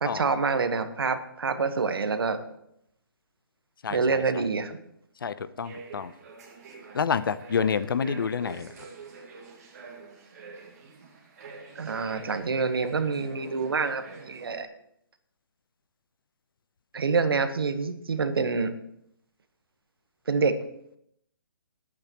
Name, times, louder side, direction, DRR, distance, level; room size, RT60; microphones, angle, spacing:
voice 1, 0.0-2.4 3.9-4.8 11.7-14.7 16.9-18.7 20.3-20.6, right 4 dB, 80° right, 9 dB, 1.3 m, -27 dB
voice 2, 3.8-4.2 5.2-6.1 6.9-8.7, left 6 dB, 70° left, 14 dB, 0.7 m, -28 dB
sound 1, 5.6-14.6, right 4 dB, 40° right, 2.2 m, -46 dB
19.0 x 8.7 x 3.0 m, 0.76 s
hypercardioid pair, 160°, 12 cm